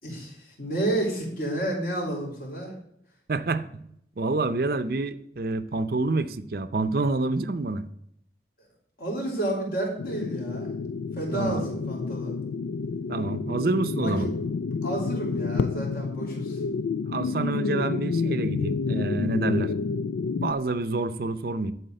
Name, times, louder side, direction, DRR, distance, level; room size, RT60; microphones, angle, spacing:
voice 1, 0.0-2.7 9.0-10.7 11.2-12.3 14.0-14.3 14.8-16.6, right 1 dB, 55° left, -2 dB, 3.6 m, -30 dB
voice 2, 3.3-3.8 4.2-7.8 11.3-11.6 13.1-14.3 17.1-19.7 20.4-21.7, right 3 dB, 55° right, 12 dB, 0.6 m, -27 dB
sound 1, 10.0-20.5, left 4 dB, 85° left, 0.4 m, -29 dB
11.0 x 4.3 x 7.7 m, 0.71 s
head